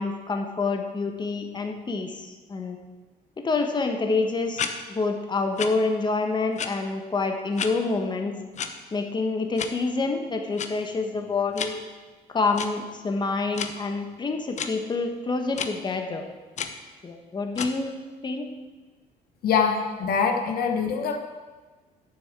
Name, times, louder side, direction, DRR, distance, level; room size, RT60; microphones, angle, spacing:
voice 1, 0.0-2.8 3.4-8.4 8.9-11.8 12.3-16.3 17.0-17.9 18.2-18.5, left 3 dB, 25° left, 4 dB, 1.4 m, -27 dB
sound 1, 4.6-4.7 5.6-5.7 6.6-6.7 7.6-7.7 8.6-8.7 9.6-9.7 10.6-10.7 11.6-11.7 12.5-12.7 13.5-13.7 14.6-14.7 15.5-15.7 16.6-16.7 17.5-17.7, left 7 dB, 45° left, 1.0 m, -30 dB
voice 2, 19.4-21.2, left 6 dB, 65° left, 5 dB, 1.2 m, -24 dB
9.5 x 7.2 x 7.5 m, 1.3 s
cardioid pair, 110°, 17 cm